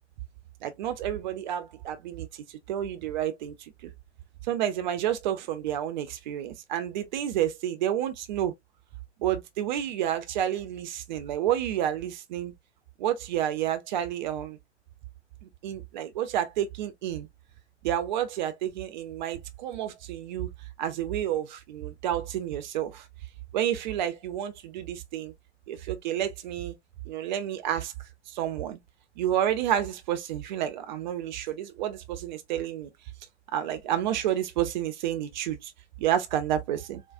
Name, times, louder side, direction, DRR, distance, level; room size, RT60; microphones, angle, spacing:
voice 1, 0.6-3.9 4.5-8.5 9.2-12.5 13.0-14.6 15.4-17.3 17.8-20.5 20.8-23.1 23.5-25.3 25.7-26.8 27.1-27.9 28.3-28.8 29.2-32.9 33.5-35.7 36.0-37.0, right 11 dB, 40° right, 0.7 m, -30 dB
4.7 x 2.2 x 2.4 m
figure-of-eight pair, 110°, 36 cm